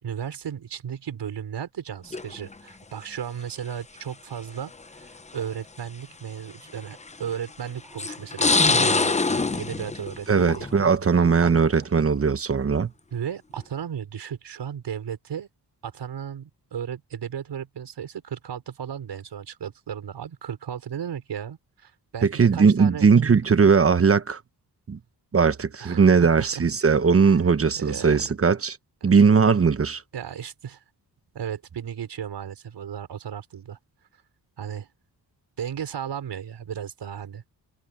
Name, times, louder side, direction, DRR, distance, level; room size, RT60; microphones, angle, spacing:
voice 1, 0.0-10.9 11.4-11.6 13.1-15.5 15.8-23.2 25.8-26.6 27.8-28.2 29.0-29.1 30.1-30.8 31.3-33.8 34.6-34.9 35.6-37.5, right 8 dB, 85° right, 5.4 m, -35 dB
sound 1, 2.1-2.5 3.6-3.7 4.8-4.9 5.4-5.5 6.9-7.3 8.0-10.9 11.2-11.7, left 3 dB, 15° left, 0.7 m, -24 dB
voice 2, 10.3-12.9 22.2-24.4 24.9-25.0 25.3-28.8 29.0-30.0, right 5 dB, 35° right, 1.0 m, -19 dB
wide cardioid pair, 105°, 40 cm